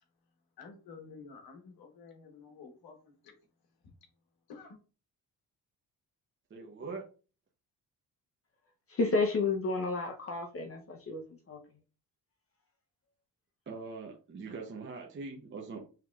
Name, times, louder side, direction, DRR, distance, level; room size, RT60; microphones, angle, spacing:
voice 1, 0.6-3.4 3.8-3.9 4.5-4.8, left 5 dB, 80° left, 3 dB, 1.4 m, -51 dB
voice 2, 6.5-7.0 13.7-15.9, right 4 dB, 30° right, 0 dB, 0.8 m, -42 dB
voice 3, 8.9-11.6, left 3 dB, 40° left, 3 dB, 0.8 m, -31 dB
5.8 x 3.1 x 2.4 m, 0.36 s
cardioid pair, 105°, 37 cm